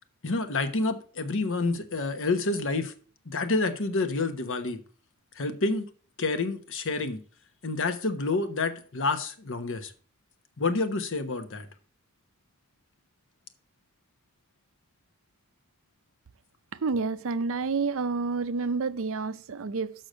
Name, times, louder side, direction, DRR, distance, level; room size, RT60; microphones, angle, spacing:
voice 1, 0.2-2.9 3.3-4.8 5.4-5.9 6.2-7.2 7.6-9.9 10.6-11.6, left 3 dB, 60° left, 1.1 m, -28 dB
voice 2, 16.7-19.9, right 4 dB, 60° right, 0.5 m, -29 dB
6.6 x 6.0 x 6.2 m
head